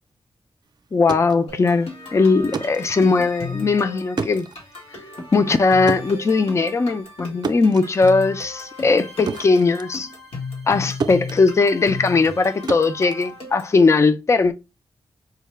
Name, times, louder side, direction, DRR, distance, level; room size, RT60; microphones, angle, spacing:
sound 1, 0.8-10.7 11.0-14.0, right 5 dB, 45° right, 0.4 m, -33 dB
voice 1, 0.9-4.5 5.3-10.1 10.7-14.5, left 4 dB, 30° left, 0.4 m, -19 dB
sound 2, 1.5-13.8, left 3 dB, 90° left, 1.6 m, -36 dB
sound 3, 3.2-3.5 5.2-5.6 7.2-7.5 9.2-9.6, left 1 dB, 75° left, 1.3 m, -38 dB
4.6 x 2.1 x 3.1 m
wide cardioid pair, 130°, 9 cm